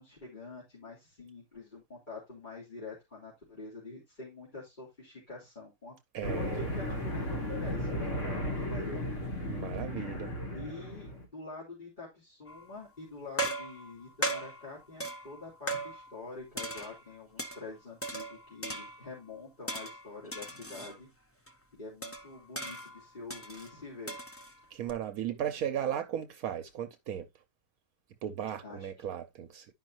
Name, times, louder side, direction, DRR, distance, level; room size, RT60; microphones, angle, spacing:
voice 1, 0.0-5.9 6.3-8.1 8.5-9.1 9.7-9.9 10.5-21.1 21.7-24.2 28.6-29.0, left 3 dB, 30° left, 3.5 m, -46 dB
voice 2, 6.1-6.7 9.5-10.3 24.7-27.3 28.2-29.7, right 9 dB, 75° right, 1.1 m, -36 dB
sound 1, 6.2-11.3, left 1 dB, 55° left, 2.3 m, -35 dB
sound 2, 12.5-12.8 13.4-16.3 16.6-17.7 18.0-19.2 19.7-21.0 21.5-21.6 22.0-24.9, right 1 dB, 15° left, 0.5 m, -38 dB
11.0 x 5.3 x 2.9 m
omnidirectional pair, 1.6 m